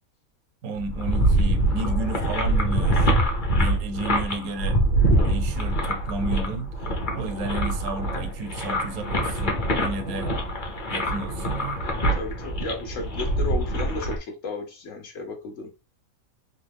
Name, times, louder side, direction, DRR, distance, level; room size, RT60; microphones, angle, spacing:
voice 1, 0.6-3.1 3.5-4.8 5.2-10.4 10.9-11.8, right 2 dB, 75° right, 1.2 m, -33 dB
sound 1, 0.7-14.2, right 1 dB, 35° left, 1.1 m, -24 dB
voice 2, 12.1-15.7, left 3 dB, 65° left, 1.4 m, -34 dB
4.2 x 2.8 x 3.4 m
omnidirectional pair, 1.5 m